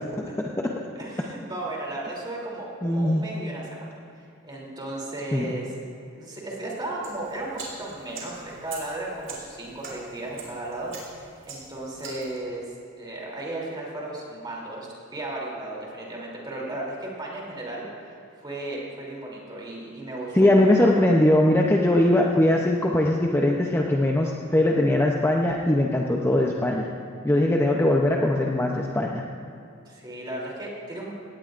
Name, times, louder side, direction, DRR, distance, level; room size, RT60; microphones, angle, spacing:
voice 1, 0.2-0.5 2.8-3.2 5.3-5.5 20.3-26.9 27.2-29.2, left 1 dB, 10° left, -1 dB, 0.6 m, -21 dB
voice 2, 0.9-3.9 4.2-5.7 6.1-12.6 13.0-20.9 29.9-31.1, right 2 dB, 20° right, -4 dB, 3.0 m, -35 dB
sound 1, 7.0-12.4, right 4 dB, 65° right, 3.6 m, -43 dB
17.5 x 17.5 x 2.5 m, 2.5 s
head